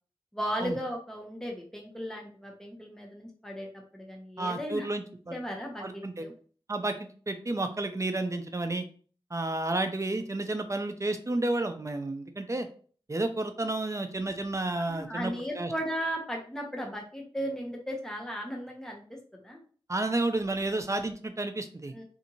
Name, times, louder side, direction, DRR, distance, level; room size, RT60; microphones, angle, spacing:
voice 1, 0.3-3.7 3.9-4.9 5.3-6.3 14.9-19.0 19.4-19.6 21.9-22.0, equal, 5° left, -1 dB, 0.9 m, -36 dB
voice 2, 4.4-5.4 5.8-6.3 6.7-8.8 9.3-12.7 13.1-15.7 19.9-22.0, right 2 dB, 30° right, 8 dB, 0.4 m, -31 dB
2.6 x 2.5 x 2.8 m, 0.43 s
wide cardioid pair, 50°, 10 cm